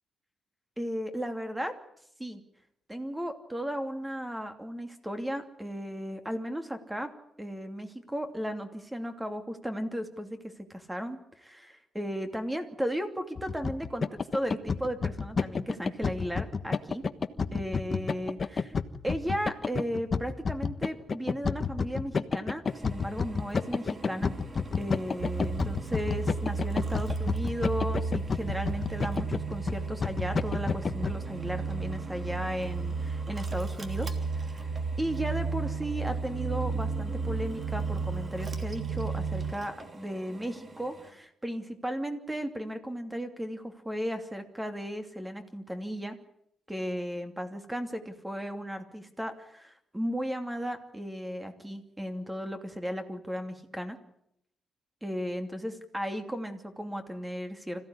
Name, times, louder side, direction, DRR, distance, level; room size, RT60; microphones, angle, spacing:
voice 1, 0.8-1.7 2.2-2.4 2.9-7.1 7.4-17.0 17.5-18.8 19.0-24.3 24.8-34.2 34.4-34.7 35.0-46.2 46.7-54.0 55.0-57.8, equal, 10° right, 6 dB, 2.8 m, -35 dB
sound 1, 13.4-31.1, left 5 dB, 35° left, 1.2 m, -30 dB
Drill, 22.6-41.1, right 2 dB, 30° right, 3.1 m, -47 dB
sound 2, 25.2-39.5, right 4 dB, 80° right, 1.4 m, -33 dB
26.0 x 16.0 x 9.9 m, 0.76 s
cardioid pair, 130°, 0 cm